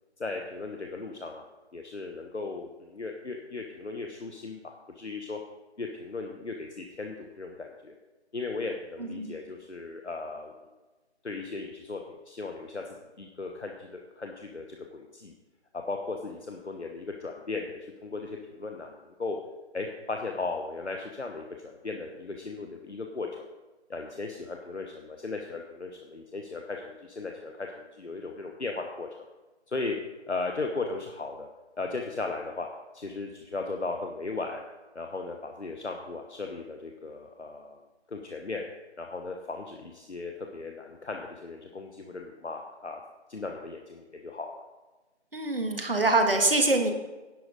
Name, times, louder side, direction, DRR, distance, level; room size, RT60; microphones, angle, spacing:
voice 1, 0.2-1.4 1.7-5.4 5.8-7.9 8.3-10.5 11.2-12.0 12.3-14.7 14.9-15.3 15.7-19.4 19.7-23.5 23.9-29.3 29.7-30.0 30.3-31.5 31.8-32.7 32.9-34.6 34.9-37.8 38.1-38.6 39.0-43.0 43.3-44.6, left 3 dB, 75° left, 3 dB, 1.1 m, -36 dB
voice 2, 9.0-9.4 45.3-46.9, right 2 dB, 55° right, 4 dB, 1.7 m, -24 dB
11.0 x 8.0 x 5.0 m, 1.2 s
figure-of-eight pair, 165°, 34 cm